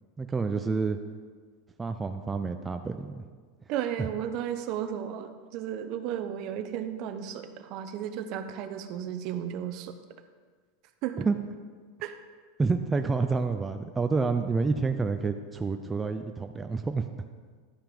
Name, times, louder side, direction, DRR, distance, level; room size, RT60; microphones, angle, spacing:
voice 1, 0.2-1.0 1.8-3.3 4.0-4.1 11.2-11.4 12.6-17.0, right 4 dB, 15° right, 6 dB, 0.4 m, -28 dB
voice 2, 3.7-9.9 11.0-11.3 12.0-12.1, right 9 dB, 50° right, 9 dB, 0.8 m, -34 dB
11.5 x 5.7 x 5.1 m, 1.6 s
supercardioid pair, 130°, 0 cm